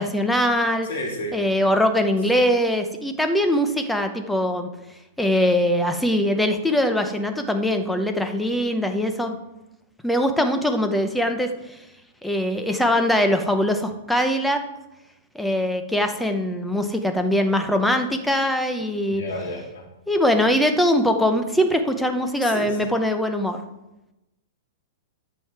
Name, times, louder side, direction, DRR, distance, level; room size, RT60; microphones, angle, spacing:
voice 1, 0.0-0.9 1.3-4.7 5.2-9.4 10.0-11.5 12.2-14.6 15.3-19.2 20.1-23.6, equal, ahead, 6 dB, 0.8 m, -22 dB
voice 2, 0.9-1.4 19.1-19.8 22.4-22.8, left 1 dB, 60° left, -1 dB, 3.5 m, -31 dB
10.5 x 7.6 x 4.7 m, 0.95 s
supercardioid pair, 165°, 0 cm